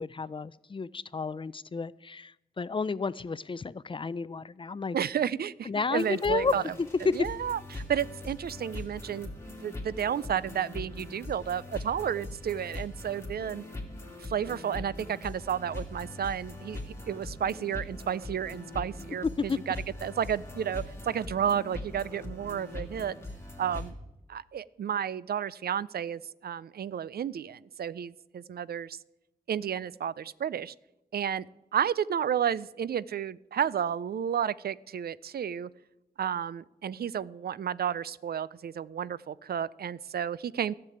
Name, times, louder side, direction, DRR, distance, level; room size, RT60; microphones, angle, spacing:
voice 1, 0.0-5.0 5.7-7.2 19.2-19.6, left 4 dB, 35° left, 19 dB, 0.4 m, -31 dB
voice 2, 4.9-6.6 7.1-13.6 14.2-19.8 20.0-23.1 23.6-23.9 24.3-29.0 29.5-30.7 31.1-31.5 31.7-35.7 36.2-40.7, right 9 dB, 75° right, 20 dB, 0.4 m, -32 dB
sound 1, 5.9-23.9, left 2 dB, 15° left, 2.3 m, -41 dB
14.0 x 6.8 x 8.5 m, 0.95 s
wide cardioid pair, 105°, 16 cm